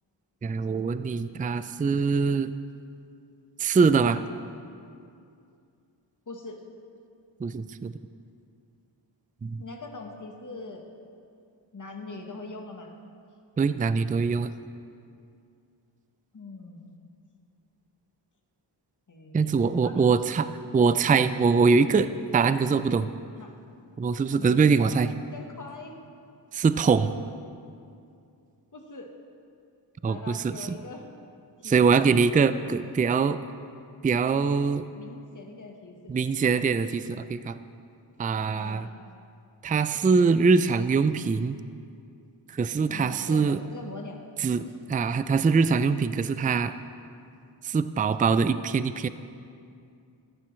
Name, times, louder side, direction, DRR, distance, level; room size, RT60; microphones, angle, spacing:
voice 1, 0.4-2.5 3.6-4.2 7.4-7.9 9.4-9.6 13.6-14.5 19.3-20.5 20.7-23.1 24.0-25.1 26.5-27.1 30.0-30.8 31.6-33.4 34.0-34.8 36.1-37.6 38.2-38.9 39.6-41.6 42.5-43.6 44.4-44.6 44.9-46.7 47.6-49.1, right 5 dB, 20° right, 12 dB, 0.3 m, -23 dB
voice 2, 6.3-6.6 9.6-10.8 11.7-12.9 16.3-17.0 19.1-20.1 23.4-23.6 24.3-25.0 25.3-25.9 28.7-29.1 30.1-31.1 31.6-32.1 35.0-36.2 36.4-36.6 38.5-39.0 42.9-44.2 44.6-44.7, left 3 dB, 45° left, 2 dB, 1.4 m, -42 dB
14.0 x 11.5 x 3.2 m, 2.4 s
cardioid pair, 50°, 44 cm